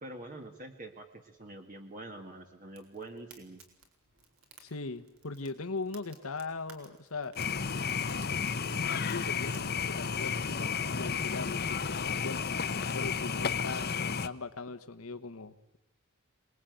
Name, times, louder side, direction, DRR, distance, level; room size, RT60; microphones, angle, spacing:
voice 1, 0.0-3.6, right 2 dB, 40° right, 4 dB, 1.7 m, -45 dB
Fire, 2.7-11.8, right 4 dB, 65° right, 4.8 m, -59 dB
voice 2, 4.6-7.3 8.2-12.4 12.9-15.8, left 3 dB, 75° left, 8 dB, 1.3 m, -40 dB
sound 1, 7.4-14.3, left 6 dB, 45° left, 0.9 m, -32 dB
27.0 x 20.5 x 9.3 m, 0.89 s
head